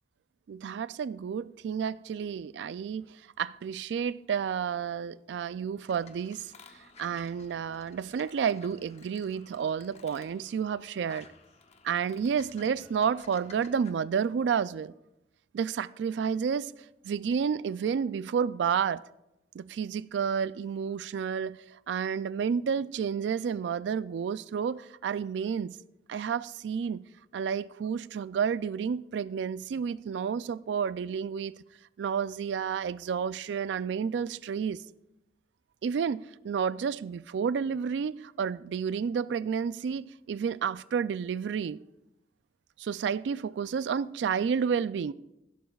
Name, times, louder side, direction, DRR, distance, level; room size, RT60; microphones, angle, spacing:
voice 1, 0.5-6.5 7.0-11.3 11.8-14.9 15.5-16.7 17.0-19.0 19.5-25.8 26.1-27.0 27.3-31.6 32.0-34.8 35.8-41.8 42.8-45.1, right 7 dB, 80° right, 0.3 m, -30 dB
sound 1, 5.9-13.9, left 4 dB, 40° left, 0.8 m, -55 dB
15.5 x 11.5 x 2.4 m
head